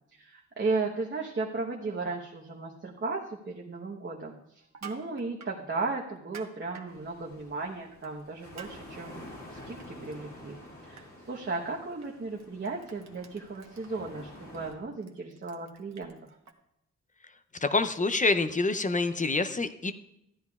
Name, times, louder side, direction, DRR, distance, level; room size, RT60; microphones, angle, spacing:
voice 1, 0.1-10.6 10.8-16.4, right 3 dB, 40° right, -2 dB, 1.1 m, -35 dB
Crushing, 4.6-5.6 6.2-6.9 8.0-8.2 8.6-8.7 9.1-10.2 10.5-10.7 11.0-11.1 12.0-12.1 12.4-16.5, right 6 dB, 65° right, 1.1 m, -49 dB
sound 1, 6.9-14.7, left 1 dB, 50° left, 2.4 m, -49 dB
voice 2, 17.6-19.9, left 3 dB, 25° left, 11 dB, 0.6 m, -26 dB
15.0 x 10.5 x 2.4 m, 0.80 s
wide cardioid pair, 100°, 29 cm